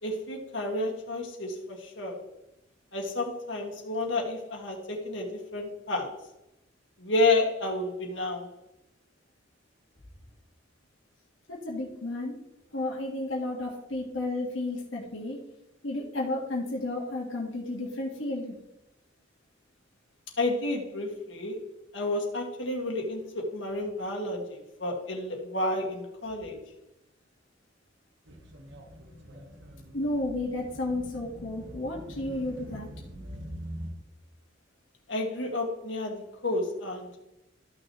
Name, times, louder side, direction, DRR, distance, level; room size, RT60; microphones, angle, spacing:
voice 1, 0.0-2.2 2.9-6.2 7.0-8.5 20.4-21.6 21.9-26.6 35.1-37.2, left 2 dB, 70° left, 0 dB, 2.0 m, -30 dB
voice 2, 11.5-12.4 12.7-15.4 15.8-18.5 29.9-32.9, left 2 dB, 85° left, -2 dB, 1.7 m, -32 dB
sound 1, 28.3-33.9, equal, 70° right, 1.4 m, -43 dB
13.5 x 6.3 x 3.1 m, 0.89 s
head